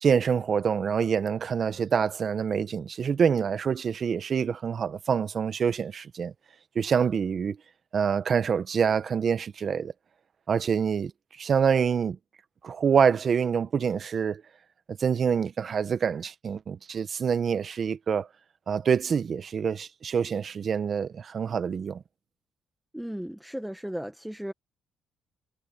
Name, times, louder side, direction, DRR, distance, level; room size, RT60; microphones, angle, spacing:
voice 1, 0.0-6.3 6.7-7.6 7.9-9.9 10.5-11.1 11.4-12.2 12.6-14.4 14.9-18.3 18.7-22.0, right 7 dB, 50° right, 1.2 m, -26 dB
voice 2, 22.9-24.5, equal, 5° right, 1.3 m, -35 dB
cardioid pair, 90°, 0 cm